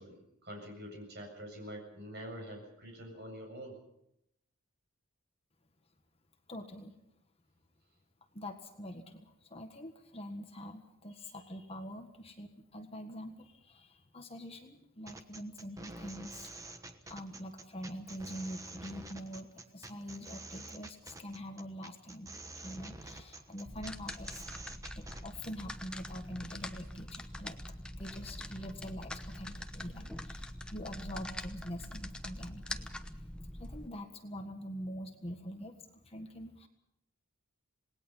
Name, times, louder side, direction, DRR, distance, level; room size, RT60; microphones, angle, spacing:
voice 1, 0.0-3.8, equal, 50° right, 3 dB, 7.4 m, -46 dB
voice 2, 6.5-6.9 8.3-16.5 17.1-22.3 22.6-24.4 24.9-27.6 28.0-32.9 33.6-35.8 36.0-36.7, equal, 25° left, 5 dB, 1.6 m, -45 dB
sound 1, 15.1-25.2, right 2 dB, 15° right, 1.2 m, -48 dB
sound 2, 23.6-33.9, left 1 dB, 5° left, 0.9 m, -44 dB
27.0 x 19.5 x 5.6 m, 0.79 s
head